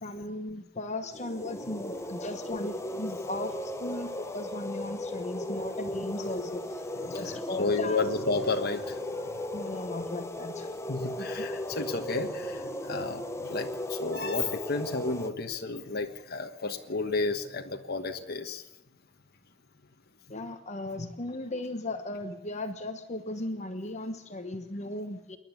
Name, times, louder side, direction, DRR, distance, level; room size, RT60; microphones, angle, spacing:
voice 1, 0.0-8.0 9.5-10.7 11.2-11.5 20.3-25.4, left 2 dB, 35° left, 7 dB, 1.2 m, -37 dB
sound 1, 1.1-15.3, left 1 dB, 15° left, 1.0 m, -36 dB
voice 2, 7.1-9.0 10.9-13.2 13.5-18.6, left 3 dB, 50° left, 4 dB, 1.4 m, -32 dB
28.0 x 11.0 x 9.6 m, 1.0 s
head